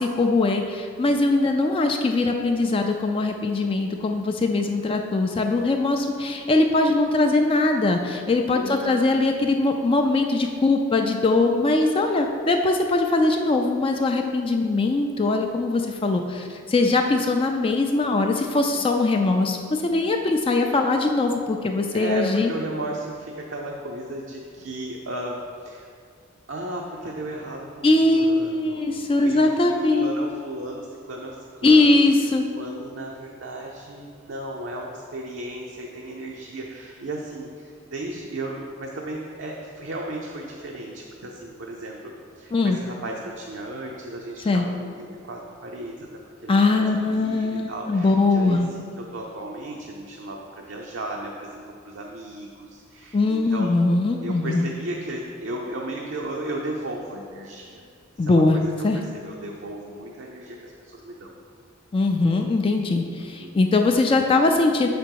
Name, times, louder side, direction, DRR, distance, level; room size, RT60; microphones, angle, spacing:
voice 1, 0.0-22.5 27.8-30.1 31.6-32.4 42.5-42.8 44.5-44.7 46.5-48.7 53.1-54.7 58.2-58.6 58.8-59.0 61.9-64.9, left 2 dB, 25° left, 4 dB, 0.3 m, -21 dB
voice 2, 8.5-9.0 21.9-25.9 26.5-32.0 32.6-46.1 46.4-53.7 54.2-57.8 58.1-61.3 63.2-63.5, right 1 dB, 75° right, -1 dB, 0.6 m, -35 dB
6.6 x 5.1 x 4.6 m, 2.2 s
head